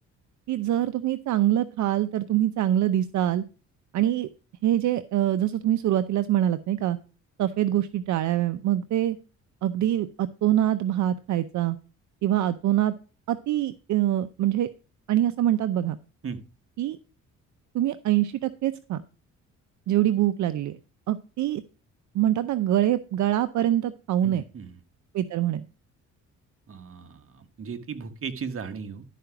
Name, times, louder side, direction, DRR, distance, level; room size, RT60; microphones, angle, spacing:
voice 1, 0.5-3.4 3.9-4.3 4.6-7.0 7.4-9.2 9.6-11.8 12.2-12.9 13.3-14.7 15.1-16.0 16.8-17.0 17.7-19.0 19.9-20.8 21.1-21.6 22.1-24.4 25.1-25.7, right 12 dB, 70° right, 12 dB, 0.6 m, -24 dB
voice 2, 24.2-24.8 26.7-29.0, right 6 dB, 45° right, 8 dB, 1.4 m, -36 dB
12.0 x 5.0 x 5.8 m, 0.34 s
cardioid pair, 90°, 30 cm